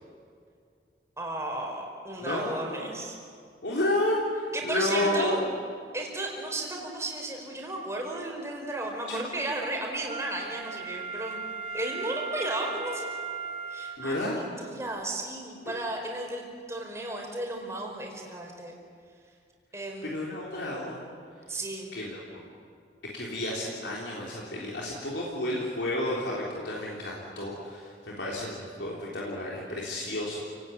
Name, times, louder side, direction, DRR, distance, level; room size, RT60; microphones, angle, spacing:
voice 1, 1.2-3.1 4.5-5.4 5.9-11.4 11.7-13.1 13.7-18.8 19.7-20.2 21.5-21.9, right 1 dB, 15° right, 0 dB, 4.6 m, -34 dB
voice 2, 2.2-2.9 3.6-5.6 9.1-9.3 14.0-14.4 20.0-21.1 21.9-22.4 23.1-30.4, left 1 dB, 75° left, -4 dB, 3.8 m, -31 dB
Wind instrument woodwind instrument, 10.1-14.3 14.8-14.9, right 4 dB, 40° right, 4.8 m, -37 dB
29.0 x 18.5 x 9.4 m, 2.3 s
head